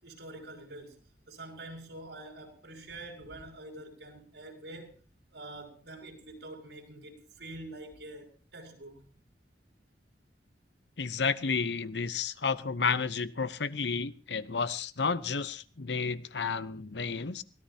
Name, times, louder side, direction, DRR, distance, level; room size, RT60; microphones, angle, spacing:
voice 1, 0.0-1.0 1.3-4.9 5.3-9.1, right 2 dB, 85° right, 5.4 m, -46 dB
voice 2, 11.0-17.4, left 5 dB, 80° left, 0.9 m, -31 dB
23.0 x 17.5 x 2.9 m
head